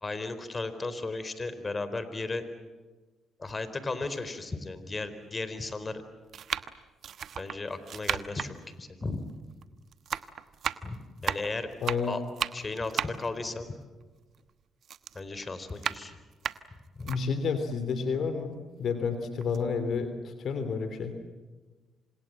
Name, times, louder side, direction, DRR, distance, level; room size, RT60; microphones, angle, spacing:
voice 1, 0.0-2.4 3.4-6.0 7.4-9.2 10.8-11.7 12.1-12.2 12.5-13.7 15.1-16.2 17.0-17.1, left 3 dB, 30° left, 12 dB, 4.1 m, -35 dB
sound 1, 3.5-3.6 4.5-4.6 5.5-5.8 6.3-9.7 9.9-14.5 14.8-17.2 17.7-17.8 18.1-19.1 19.4-19.6, right 8 dB, 60° right, 1.2 m, -35 dB
voice 2, 11.8-12.2 17.0-21.1, left 5 dB, 65° left, 9 dB, 3.1 m, -30 dB
28.5 x 26.5 x 7.6 m, 1.3 s
hypercardioid pair, 50°, 0 cm